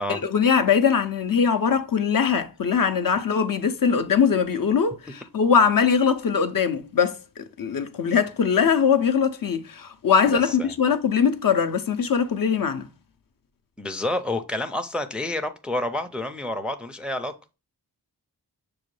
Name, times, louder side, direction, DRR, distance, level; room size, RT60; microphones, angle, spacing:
voice 1, 0.0-12.9, left 6 dB, 55° left, 0.5 m, -21 dB
voice 2, 10.3-10.7 13.8-17.3, left 1 dB, 5° right, 0.4 m, -29 dB
6.1 x 2.2 x 3.1 m
cardioid pair, 40°, 41 cm